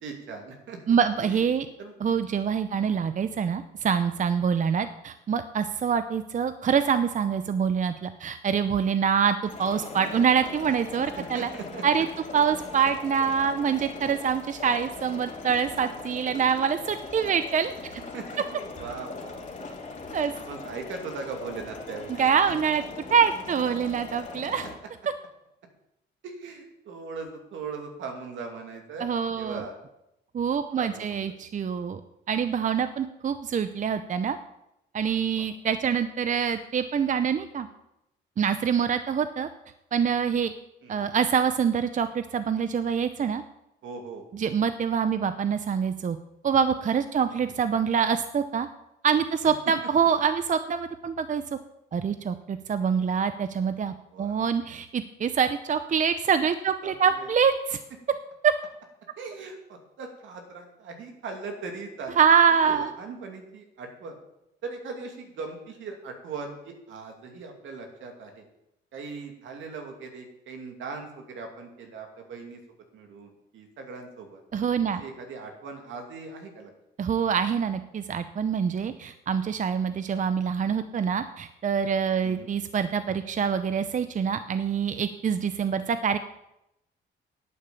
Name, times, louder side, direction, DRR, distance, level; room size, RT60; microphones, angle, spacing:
voice 1, 0.0-1.0 1.2-1.4 1.8-1.9 2.8-3.0 4.8-4.9 11.2-12.0 18.1-19.7 20.1-22.2 26.2-29.8 30.8-31.2 35.3-35.4 40.8-41.1 43.8-44.3 47.4-47.5 54.1-54.5 56.8-56.9 57.2-57.3 59.2-62.2 62.5-64.2 64.6-68.4 68.9-72.6 72.9-74.4 75.0-76.7 82.2-82.5, right 4 dB, 75° right, 3 dB, 2.6 m, -39 dB
voice 2, 0.9-1.7 2.0-11.5 11.8-12.1 12.3-17.9 20.1-20.3 22.1-22.8 23.1-24.7 29.0-29.6 30.3-32.0 32.3-34.4 34.9-37.7 38.4-39.5 39.9-40.5 40.9-43.4 44.3-46.2 46.4-48.7 49.0-51.6 51.9-57.8 58.4-58.5 62.2-62.9 74.5-75.0 77.0-86.2, right 7 dB, 40° right, 11 dB, 0.7 m, -25 dB
sound 1, 9.5-24.7, left 3 dB, 40° left, 2.9 m, -40 dB
10.5 x 9.0 x 7.0 m, 0.86 s
cardioid pair, 90°, 20 cm